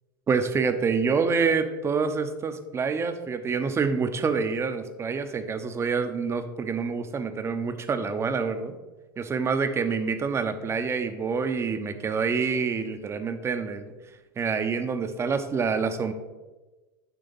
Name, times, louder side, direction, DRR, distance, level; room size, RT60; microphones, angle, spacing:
voice 1, 0.3-8.8 9.2-13.9 14.4-16.1, right 5 dB, 25° right, 8 dB, 0.8 m, -27 dB
9.9 x 3.4 x 5.5 m, 1.2 s
hypercardioid pair, 90°, 11 cm